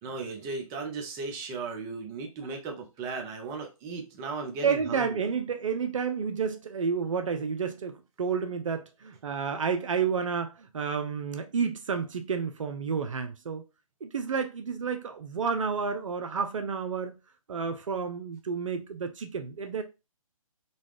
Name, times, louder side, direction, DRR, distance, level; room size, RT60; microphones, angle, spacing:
voice 1, 0.0-5.3, right 4 dB, 20° right, 0.7 m, -36 dB
voice 2, 4.6-13.7 14.0-17.2 17.5-19.8, right 6 dB, 60° right, 0.6 m, -30 dB
4.0 x 2.3 x 3.2 m
figure-of-eight pair, 140°, 18 cm